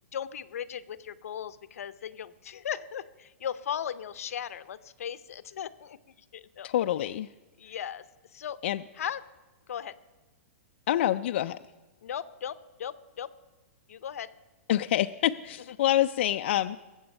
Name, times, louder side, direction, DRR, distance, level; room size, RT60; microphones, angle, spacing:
voice 1, 0.1-6.0 6.3-6.7 7.6-8.0 8.3-8.6 9.0-9.2 9.7-10.0 12.0-13.3 13.9-14.3, left 9 dB, 80° left, 15 dB, 0.7 m, -37 dB
voice 2, 6.6-7.3 8.6-8.8 10.9-11.6 14.7-16.8, left 12 dB, 55° left, 9 dB, 0.3 m, -26 dB
21.0 x 7.8 x 5.3 m, 1.2 s
hypercardioid pair, 165°, 8 cm